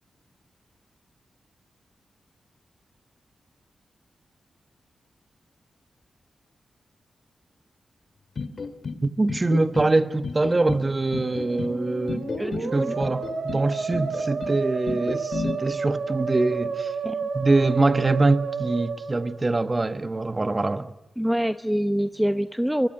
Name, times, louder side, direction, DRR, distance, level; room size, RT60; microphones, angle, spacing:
sound 1, 8.4-9.0 9.3-9.9 10.2-10.8 11.1-11.7 12.1-12.7 13.0-13.6 13.9-14.5 14.9-15.5, left 4 dB, 60° left, 2.5 m, -32 dB
voice 1, 9.0-12.3 12.7-16.9 17.3-20.9, right 2 dB, 30° right, 1.5 m, -24 dB
Musical instrument, 11.1-19.9, right 5 dB, 75° right, 4.6 m, -31 dB
voice 2, 12.4-12.9 17.0-17.3 21.2-22.9, equal, 5° right, 0.9 m, -25 dB
24.5 x 23.0 x 9.8 m
cardioid pair, 60°, 0 cm